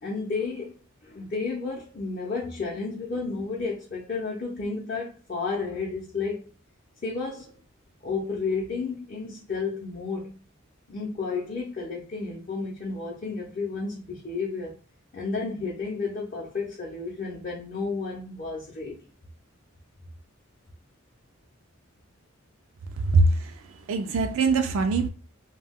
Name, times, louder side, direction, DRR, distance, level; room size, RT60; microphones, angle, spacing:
voice 1, 0.0-0.7 1.0-6.5 7.0-7.6 8.0-10.4 10.9-14.7 15.1-19.0, left 4 dB, 45° left, 0.5 m, -32 dB
voice 2, 23.0-23.5 23.9-25.1, right 3 dB, 80° right, 0.4 m, -22 dB
2.2 x 2.2 x 3.5 m
head